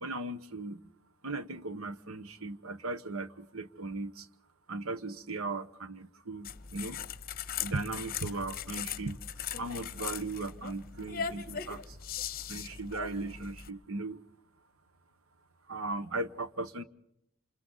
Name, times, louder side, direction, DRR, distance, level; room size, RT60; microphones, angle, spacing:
voice 1, 0.0-0.8 1.2-4.2 4.7-7.0 7.6-9.2 9.6-11.8 12.5-14.2 15.7-16.8, right 2 dB, 70° right, 12 dB, 1.2 m, -37 dB
sound 1, 6.4-13.7, left 8 dB, 45° left, 0.8 m, -39 dB
28.0 x 28.0 x 4.1 m, 0.79 s
head